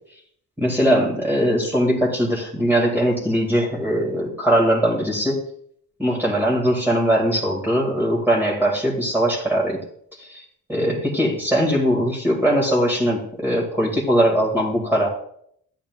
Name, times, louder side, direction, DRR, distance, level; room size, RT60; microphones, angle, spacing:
voice 1, 0.6-5.4 6.0-9.8 10.2-10.4 10.7-15.1, equal, 5° right, -4 dB, 2.1 m, -20 dB
13.0 x 8.6 x 2.4 m, 0.67 s
cardioid pair, 95°, 33 cm